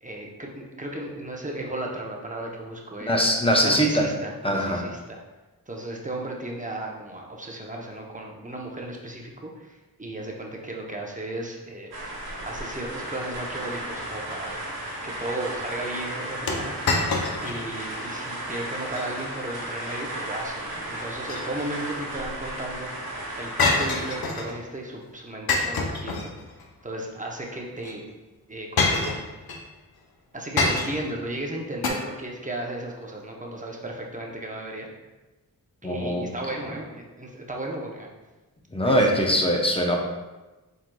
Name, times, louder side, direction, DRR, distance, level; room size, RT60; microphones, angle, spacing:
voice 1, 0.0-3.4 3.6-5.2 5.7-11.9 12.4-14.5 15.0-16.8 17.4-26.3 26.8-28.0 28.5-29.2 30.3-34.9 35.8-38.1 38.8-39.2, right 1 dB, 20° right, -1 dB, 0.8 m, -35 dB
voice 2, 3.1-4.0 4.4-4.8 35.8-36.3 38.7-40.0, equal, 15° left, 1 dB, 0.7 m, -22 dB
sound 1, 11.9-24.2, right 1 dB, 85° right, 1.1 m, -34 dB
sound 2, 16.5-17.7 18.0-18.1 18.7-19.1 21.0-21.9 23.6-24.6 25.5-26.7 27.8-27.9 28.8-29.6 30.6-31.2 31.8-31.9, left 3 dB, 70° left, 0.6 m, -26 dB
4.5 x 3.8 x 2.3 m, 1.1 s
cardioid pair, 50°, 38 cm